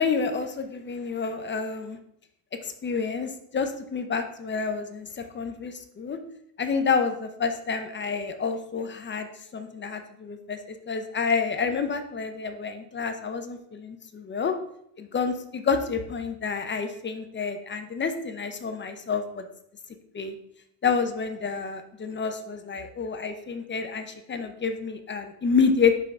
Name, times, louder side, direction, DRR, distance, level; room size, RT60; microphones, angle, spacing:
voice 1, 0.0-2.0 2.6-6.2 6.6-14.5 15.0-19.4 20.1-20.3 20.8-25.9, left 5 dB, 25° left, 7 dB, 0.5 m, -28 dB
5.6 x 3.8 x 4.7 m, 0.74 s
cardioid pair, 120°, 48 cm